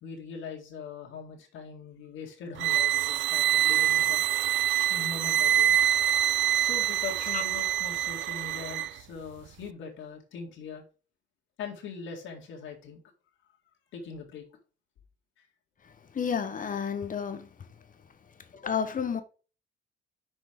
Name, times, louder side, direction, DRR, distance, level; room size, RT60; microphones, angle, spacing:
voice 1, 0.0-4.2 4.9-5.8 6.6-10.8 11.6-13.0 13.9-14.4, left 5 dB, 80° left, 1.9 m, -41 dB
sound 1, 2.6-8.9, right 11 dB, 70° right, 0.4 m, -25 dB
voice 2, 15.8-17.7 18.4-19.2, left 7 dB, 40° left, 1.1 m, -32 dB
6.3 x 4.6 x 5.0 m
cardioid pair, 90°, 20 cm